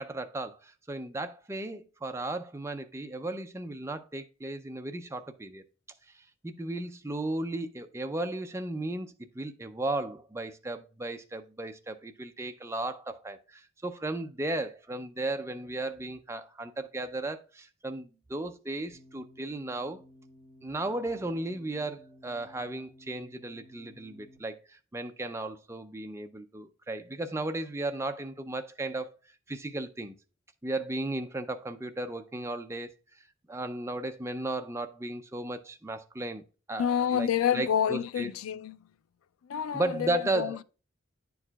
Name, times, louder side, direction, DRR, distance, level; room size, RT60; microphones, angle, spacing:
voice 1, 0.0-5.6 6.1-20.0 20.6-29.1 29.5-30.1 30.6-32.9 33.5-36.4 36.7-38.3 39.7-40.6, right 2 dB, 15° right, 0.4 m, -35 dB
sound 1, 18.9-24.4, left 1 dB, 30° left, 2.2 m, -56 dB
voice 2, 36.8-38.8 39.4-40.6, left 8 dB, 80° left, 0.3 m, -28 dB
9.7 x 4.7 x 2.2 m
head